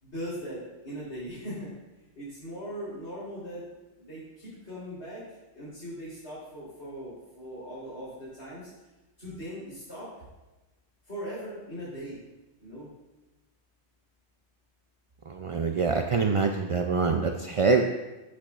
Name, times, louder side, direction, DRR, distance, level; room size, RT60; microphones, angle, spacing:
voice 1, 0.0-1.7 2.2-3.7 4.0-5.2 5.5-8.7 9.2-10.3 11.1-12.2 12.6-12.9, equal, 75° left, -11 dB, 3.9 m, -39 dB
voice 2, 15.3-17.8, right 4 dB, 50° right, 4 dB, 0.4 m, -25 dB
13.0 x 8.5 x 2.4 m, 1.1 s
omnidirectional pair, 1.2 m